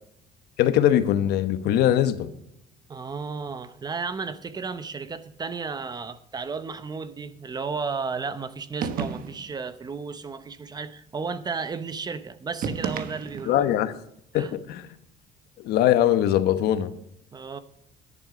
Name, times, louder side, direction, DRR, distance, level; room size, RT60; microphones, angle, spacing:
voice 1, 0.6-2.3 13.5-13.9 14.3-14.9 15.6-16.9, left 11 dB, 75° left, 11 dB, 1.0 m, -21 dB
voice 2, 2.9-13.7 14.3-14.5 17.3-17.6, right 5 dB, 25° right, 13 dB, 0.8 m, -33 dB
sound 1, 8.8-9.6 12.6-13.6, right 6 dB, 60° right, 1.2 m, -31 dB
11.0 x 10.5 x 5.1 m, 0.74 s
cardioid pair, 125°, 17 cm